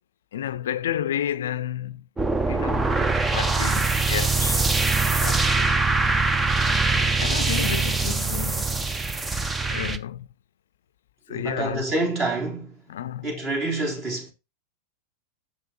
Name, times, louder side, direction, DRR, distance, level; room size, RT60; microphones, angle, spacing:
voice 1, 0.3-2.1 2.5-5.8 6.9-8.8 9.3-10.3 11.3-11.8 12.9-13.3, left 10 dB, 60° left, 0.5 m, -32 dB
sound 1, 2.2-10.0, right 3 dB, 10° right, 0.7 m, -23 dB
voice 2, 11.3-12.8 13.2-14.3, right 2 dB, 35° right, 3.6 m, -27 dB
6.5 x 5.7 x 4.1 m
figure-of-eight pair, 90°, 0 cm